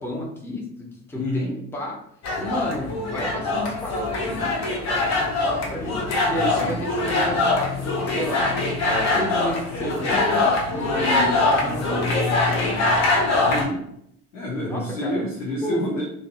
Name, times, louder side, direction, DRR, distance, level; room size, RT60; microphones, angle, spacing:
voice 1, 0.0-2.0 2.4-8.5 8.9-10.4 10.7-12.0 12.6-12.8 14.7-15.3 15.6-15.9, left 1 dB, 5° left, -3 dB, 0.6 m, -32 dB
voice 2, 1.1-1.5 6.3-6.8 13.4-13.8 14.3-16.0, left 1 dB, 80° left, -3 dB, 0.5 m, -28 dB
sound 1, 2.2-13.6, left 2 dB, 45° left, 0.7 m, -23 dB
2.5 x 2.0 x 2.4 m, 0.72 s
figure-of-eight pair, 50°, 39 cm